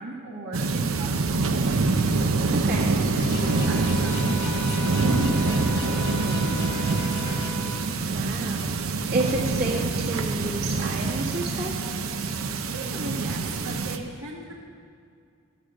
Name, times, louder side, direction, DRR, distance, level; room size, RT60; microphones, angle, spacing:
voice 1, 0.0-1.9 3.5-6.9 12.7-14.5, right 1 dB, 70° right, -6 dB, 1.8 m, -37 dB
sound 1, 0.5-14.0, right 3 dB, 85° right, 0.7 m, -25 dB
voice 2, 2.5-3.0 8.1-8.7 9.1-11.7, right 2 dB, 50° right, -6 dB, 1.8 m, -30 dB
sound 2, 3.1-7.5, left 1 dB, 55° left, 1.1 m, -35 dB
sound 3, 3.3-7.9, left 1 dB, 5° left, 0.5 m, -39 dB
12.5 x 6.5 x 6.2 m, 2.3 s
head